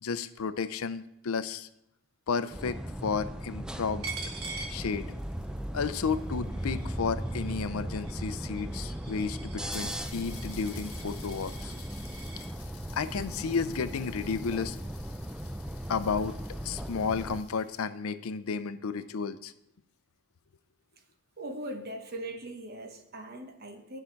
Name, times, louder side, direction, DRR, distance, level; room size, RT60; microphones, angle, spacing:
voice 1, 0.0-1.7 2.3-4.1 4.7-5.1 5.7-11.7 12.9-14.8 15.9-16.4 16.6-19.5, left 5 dB, 70° left, 13 dB, 0.5 m, -32 dB
sound 1, 2.5-17.4, right 1 dB, 5° right, 0.3 m, -37 dB
Coin (dropping), 4.0-5.5 5.9-12.5, right 3 dB, 70° right, 1.8 m, -45 dB
sound 2, 4.9-7.5 8.4-8.5 8.7-8.8 9.1-9.2 9.7-17.9, left 9 dB, 90° left, 1.2 m, -52 dB
voice 2, 21.4-24.0, right 1 dB, 45° right, 5 dB, 1.1 m, -40 dB
10.5 x 5.7 x 4.5 m, 0.79 s
head